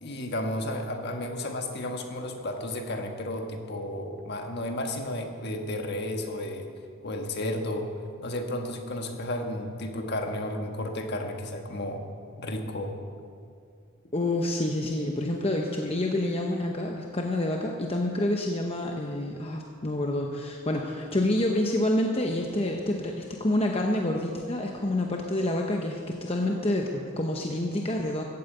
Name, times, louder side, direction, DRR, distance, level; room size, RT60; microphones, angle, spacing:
voice 1, 0.0-6.7 7.0-7.9 8.2-12.0 12.4-12.9, left 1 dB, 50° left, 4 dB, 1.5 m, -33 dB
voice 2, 14.1-28.2, left 1 dB, 25° left, 1 dB, 0.9 m, -28 dB
14.5 x 9.0 x 8.3 m, 2.3 s
head